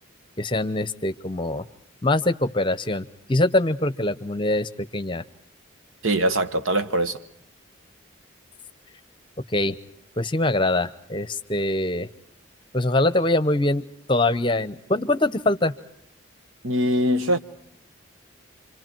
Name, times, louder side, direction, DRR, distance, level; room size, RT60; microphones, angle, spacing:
voice 1, 0.4-1.7 2.0-5.2 9.5-9.7 10.2-12.1 12.7-13.8 14.1-15.7, left 2 dB, 25° left, 0.8 m, -23 dB
voice 2, 6.0-7.2 16.6-17.4, right 1 dB, 85° right, 1.3 m, -22 dB
28.0 x 25.5 x 4.5 m
head